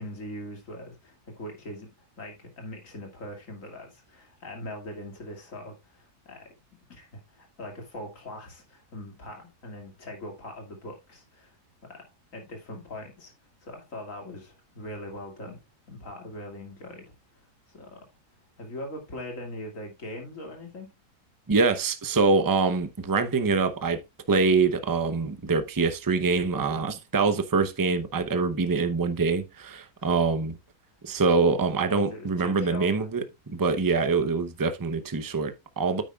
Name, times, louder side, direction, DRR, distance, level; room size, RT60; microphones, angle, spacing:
voice 1, 0.0-1.9 2.2-6.5 6.9-11.6 11.8-13.3 13.6-15.6 15.9-18.0 18.6-20.9 30.0-30.1 31.9-33.1, left 1 dB, 55° left, 2.8 m, -41 dB
voice 2, 21.5-24.0 24.3-30.6 31.0-36.0, right 4 dB, 25° right, 0.5 m, -24 dB
9.2 x 8.9 x 2.4 m
omnidirectional pair, 1.6 m